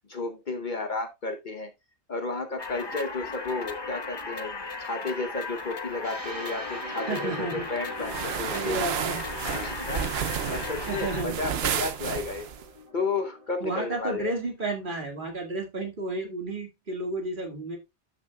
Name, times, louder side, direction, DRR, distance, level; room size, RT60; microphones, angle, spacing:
voice 1, 0.1-1.7 2.1-8.8 9.5-12.5 12.9-14.3, left 3 dB, 45° left, 7 dB, 1.0 m, -33 dB
sound 1, 2.6-11.2, left 3 dB, 25° left, 0.8 m, -36 dB
sound 2, 6.0-13.9, equal, 30° right, 1.1 m, -42 dB
voice 2, 7.1-7.7 8.5-9.2 10.9-11.4 13.6-17.8, right 2 dB, 50° right, 3 dB, 2.2 m, -32 dB
sound 3, 8.0-12.7, right 9 dB, 65° right, 0.9 m, -31 dB
12.5 x 6.0 x 2.3 m, 0.21 s
omnidirectional pair, 1.2 m